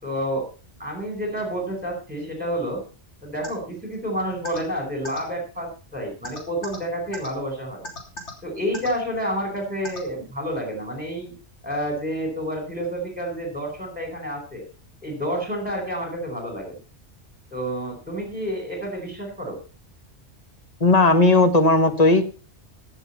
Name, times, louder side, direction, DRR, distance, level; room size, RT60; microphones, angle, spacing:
voice 1, 0.0-0.5 0.8-2.8 3.2-7.8 8.4-11.3 11.6-14.6 15.0-16.8 17.5-19.6, equal, 5° right, 2 dB, 5.1 m, -29 dB
sound 1, 3.4-3.5 4.4-4.6 5.0-5.2 6.2-6.8 7.1-7.3 7.8-8.3 8.7-8.9 9.8-10.0, left 1 dB, 75° left, 3.7 m, -34 dB
voice 2, 20.8-22.2, left 2 dB, 35° left, 8 dB, 1.5 m, -16 dB
16.0 x 7.3 x 5.7 m, 0.36 s
omnidirectional pair, 1.2 m